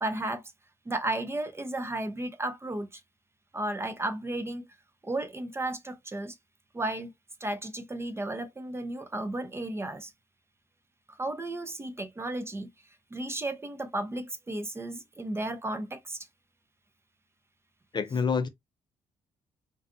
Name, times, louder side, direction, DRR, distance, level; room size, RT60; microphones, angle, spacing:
voice 1, 0.0-0.4 0.9-3.0 3.5-4.7 5.0-6.4 6.7-7.1 7.4-10.1 11.1-12.7 13.1-16.3, right 1 dB, 20° right, 0.5 m, -34 dB
voice 2, 17.9-18.5, left 5 dB, 35° left, 0.5 m, -27 dB
2.4 x 2.3 x 2.5 m
supercardioid pair, 60°, 13 cm